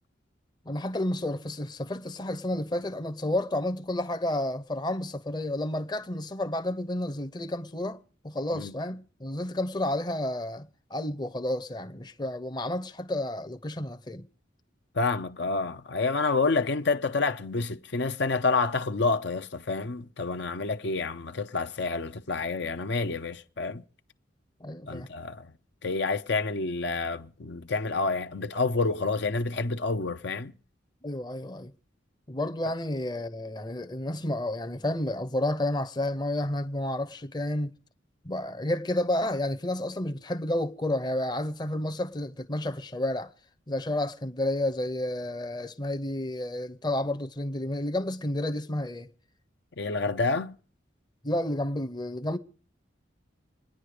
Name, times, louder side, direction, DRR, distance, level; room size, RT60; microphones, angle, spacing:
voice 1, 0.7-14.3 24.6-25.1 31.0-31.7 32.3-37.7 38.2-43.3 43.7-49.1 51.2-52.4, left 1 dB, 20° left, 0.8 m, -31 dB
voice 2, 14.9-23.8 24.9-25.5 25.8-30.5 49.8-50.5, left 3 dB, 60° left, 0.7 m, -28 dB
25.5 x 10.0 x 5.0 m
head